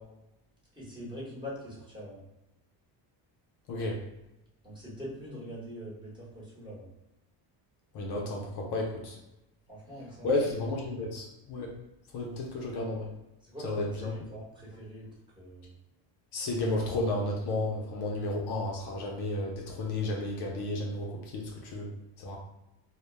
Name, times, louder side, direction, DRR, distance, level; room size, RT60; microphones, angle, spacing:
voice 1, 0.7-2.2 4.6-6.9 9.7-10.3 13.4-15.1 15.3-15.7, equal, 10° right, -6 dB, 1.0 m, -43 dB
voice 2, 3.7-4.0 7.9-9.2 10.2-11.7 12.1-13.1 13.6-14.1 16.3-21.9 22.2-22.4, left 2 dB, 55° left, 0 dB, 0.6 m, -32 dB
2.2 x 2.1 x 3.1 m, 0.93 s
cardioid pair, 105°, 46 cm